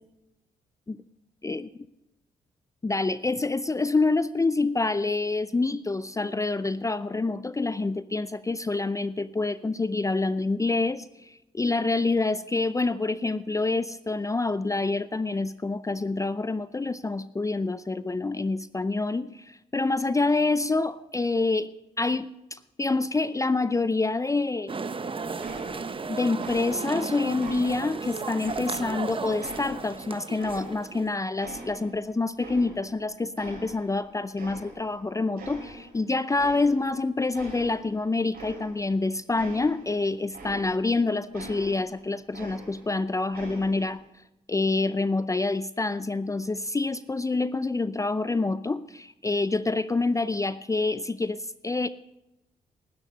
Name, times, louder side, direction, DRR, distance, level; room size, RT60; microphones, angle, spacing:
voice 1, 2.8-21.7 22.0-24.7 26.1-44.0 44.5-51.9, left 3 dB, 20° left, 15 dB, 0.5 m, -27 dB
sound 1, 24.7-31.2, right 4 dB, 30° right, 0.9 m, -35 dB
sound 2, 25.4-26.1 26.4-27.0 27.4-29.0 29.4-31.1 31.4-33.0 33.4-34.0 34.4-35.0 35.4-35.9 36.3-37.0 37.3-40.9 41.3-43.0 43.3-44.0, right 2 dB, 70° right, 6.4 m, -44 dB
19.5 x 9.8 x 5.4 m, 0.91 s
hypercardioid pair, 50°, 17 cm